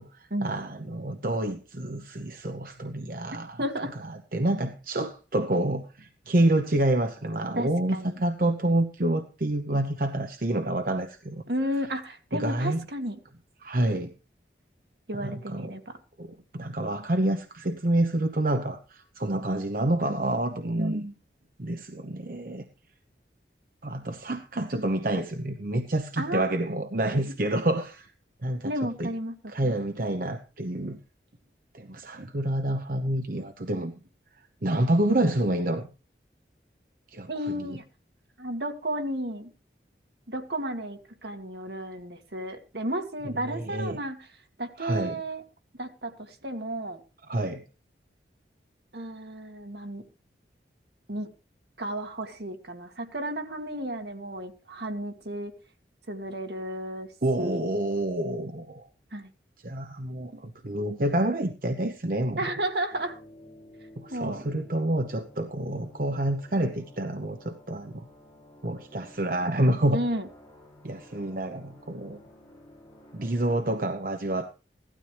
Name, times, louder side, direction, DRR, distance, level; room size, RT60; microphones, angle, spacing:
voice 1, 0.0-3.6 4.0-11.4 12.3-12.8 13.6-14.1 15.1-15.7 16.2-21.0 21.6-22.6 23.8-28.1 28.4-28.7 29.0-29.1 29.5-31.0 31.7-33.9 34.6-35.9 37.1-37.8 43.2-44.0 44.8-45.2 47.3-47.6 57.2-58.9 59.6-62.4 64.0-68.1 68.6-70.0 70.8-72.2 73.1-74.5, right 1 dB, 50° right, 0.8 m, -28 dB
voice 2, 3.6-4.0 7.6-8.2 11.5-13.2 15.1-16.0 20.8-21.1 26.2-26.6 28.6-29.3 29.6-29.8 37.3-37.8 38.4-39.5 40.3-44.2 44.6-45.4 45.8-47.0 48.9-50.0 51.1-51.3 51.8-55.5 56.1-57.1 57.4-57.6 59.1-59.3 62.4-63.2 64.1-64.4 69.9-70.3, right 1 dB, 70° right, 1.9 m, -33 dB
sound 1, 62.9-73.7, left 1 dB, 20° left, 5.0 m, -52 dB
16.5 x 12.5 x 3.3 m
head